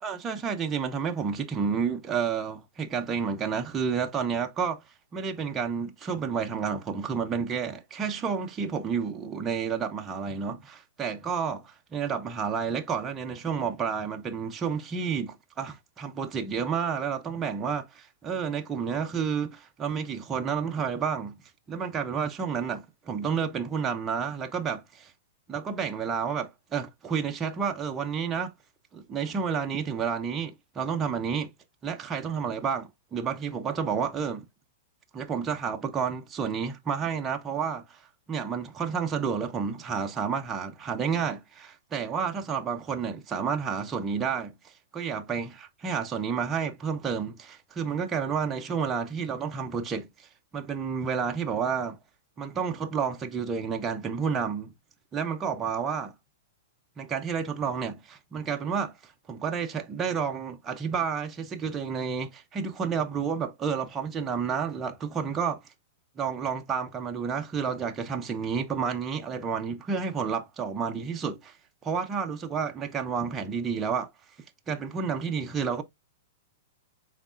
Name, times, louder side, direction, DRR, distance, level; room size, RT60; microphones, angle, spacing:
voice 1, 0.0-4.8 5.1-21.4 21.7-25.1 25.5-28.5 28.9-31.5 31.8-34.5 35.1-38.0 38.3-50.3 50.5-52.0 52.4-54.7 55.1-56.1 57.0-65.6 66.2-71.6 71.8-74.1 74.7-75.8, right 6 dB, 15° right, 0.4 m, -30 dB
6.1 x 3.6 x 2.4 m
supercardioid pair, 170°, 0 cm